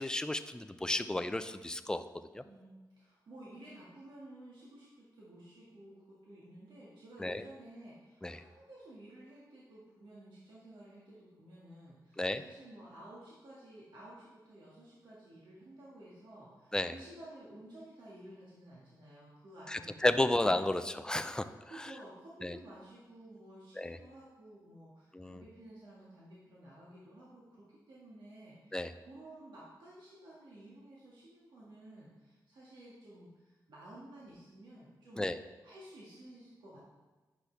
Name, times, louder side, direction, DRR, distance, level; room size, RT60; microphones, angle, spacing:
voice 1, 0.0-2.0 2.3-2.4 7.2-7.4 8.2-8.4 12.2-12.4 16.7-16.9 19.7-21.5 21.8-21.9 22.4-22.6 23.8-24.0 25.1-25.4 28.7-28.9 35.2-35.4, left 1 dB, 10° left, 10 dB, 0.4 m, -32 dB
voice 2, 2.4-20.3 20.8-20.9 21.7-35.3 35.6-36.8, right 1 dB, 80° right, -8 dB, 1.8 m, -53 dB
10.0 x 6.0 x 3.4 m, 1.2 s
cardioid pair, 70°, 8 cm